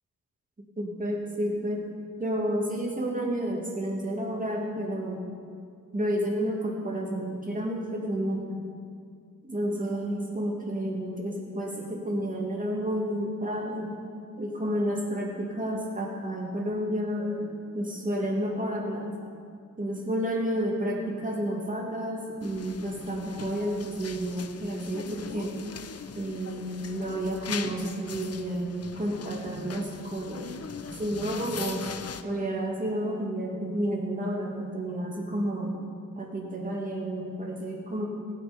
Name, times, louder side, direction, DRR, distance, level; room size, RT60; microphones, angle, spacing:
voice 1, 0.8-1.8 2.2-5.2 5.9-8.6 9.4-14.0 14.4-19.2 19.8-25.6 26.1-30.6 30.9-31.9 32.2-35.8 36.2-38.1, equal, 25° right, -1 dB, 2.2 m, -31 dB
sound 1, 22.4-32.2, left 6 dB, 50° left, 0.6 m, -41 dB
18.5 x 9.0 x 5.2 m, 2.2 s
wide cardioid pair, 165°, 31 cm